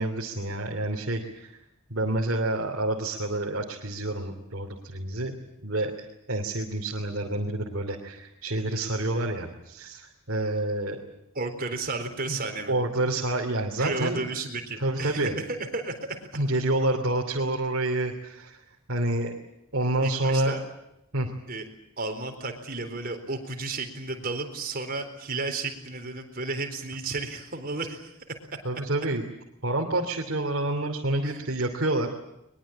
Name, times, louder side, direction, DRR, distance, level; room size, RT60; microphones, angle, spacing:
voice 1, 0.0-1.5 1.9-5.3 5.6-11.0 12.3-12.4 12.7-14.2 14.8-15.4 16.3-18.6 18.9-19.4 19.7-20.6 21.1-21.3 28.6-29.2 29.6-32.1, right 2 dB, 60° right, 1 dB, 3.0 m, -28 dB
voice 2, 11.3-12.7 13.8-16.3 20.0-20.6 21.5-21.7 22.0-28.4 31.2-31.5, right 3 dB, 40° right, 5 dB, 4.1 m, -33 dB
22.5 x 22.0 x 8.8 m, 0.84 s
head